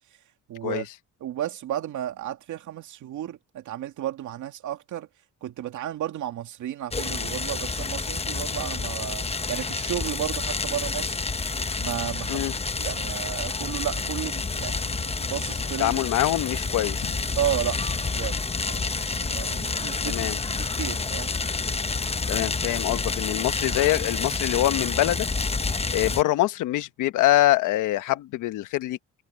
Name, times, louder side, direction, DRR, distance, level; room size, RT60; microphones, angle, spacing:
voice 1, 0.5-0.9 1.2-5.1 5.4-11.2 11.8-12.5 12.8-16.0 17.4-21.4, right 11 dB, 75° right, 2.4 m, -33 dB
sound 1, 6.9-26.2, left 4 dB, 20° left, 1.0 m, -29 dB
voice 2, 15.8-17.1 20.0-20.4 22.3-25.3 25.9-29.0, left 15 dB, 90° left, 1.2 m, -24 dB
cardioid pair, 90°, 30 cm